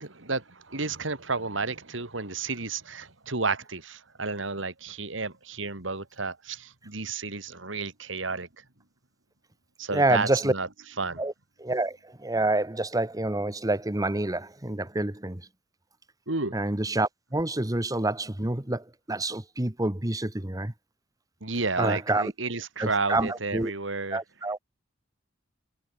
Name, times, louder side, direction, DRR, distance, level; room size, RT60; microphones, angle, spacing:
voice 1, 0.0-8.5 9.8-10.7 11.0-11.2 16.3-16.6 21.4-24.2, right 3 dB, 75° right, 3.0 m, -31 dB
voice 2, 9.9-10.5 11.2-11.3 11.6-15.4 16.5-20.7 21.8-22.3 22.8-23.7 24.1-24.6, right 2 dB, 20° right, 1.4 m, -27 dB
head